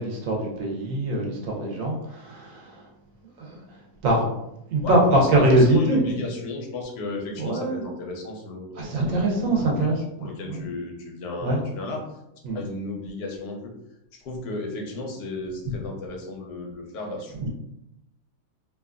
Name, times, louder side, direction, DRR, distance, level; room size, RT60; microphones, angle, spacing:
voice 1, 0.0-2.8 3.4-3.6 4.0-4.3 4.7-6.0 7.4-7.8 8.8-10.6 11.4-11.6 12.4-12.6 17.4-17.5, right 1 dB, 70° right, -2 dB, 1.1 m, -23 dB
voice 2, 4.8-9.9 10.2-12.0 12.5-13.7 14.2-17.5, left 2 dB, 60° left, 0 dB, 0.7 m, -34 dB
2.8 x 2.3 x 2.4 m, 0.85 s
omnidirectional pair, 1.5 m